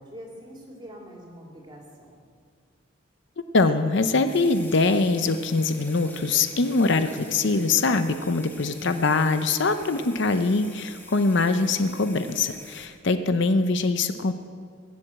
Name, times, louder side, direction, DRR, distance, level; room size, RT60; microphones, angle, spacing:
voice 1, 0.0-2.2, equal, 20° right, -1 dB, 2.8 m, -45 dB
voice 2, 3.5-14.3, left 3 dB, 55° left, 9 dB, 0.6 m, -23 dB
sound 1, 4.2-12.9, left 2 dB, 10° left, 1.5 m, -46 dB
22.0 x 7.8 x 7.7 m, 2.1 s
head